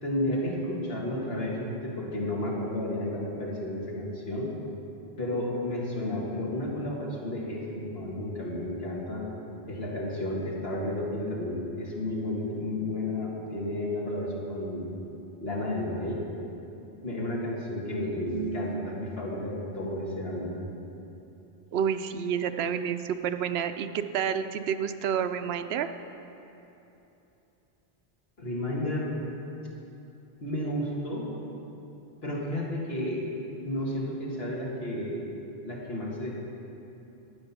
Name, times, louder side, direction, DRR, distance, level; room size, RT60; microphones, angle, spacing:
voice 1, 0.0-4.5 5.2-9.2 9.6-14.9 15.4-16.2 17.0-20.7 28.4-29.1 30.4-31.3 32.2-33.2 33.6-35.2 35.6-36.5, left 1 dB, 75° left, -4 dB, 2.3 m, -32 dB
voice 2, 18.3-18.8 21.7-25.9, right 8 dB, 80° right, 10 dB, 0.8 m, -29 dB
12.0 x 8.9 x 5.9 m, 3.0 s
omnidirectional pair, 1.0 m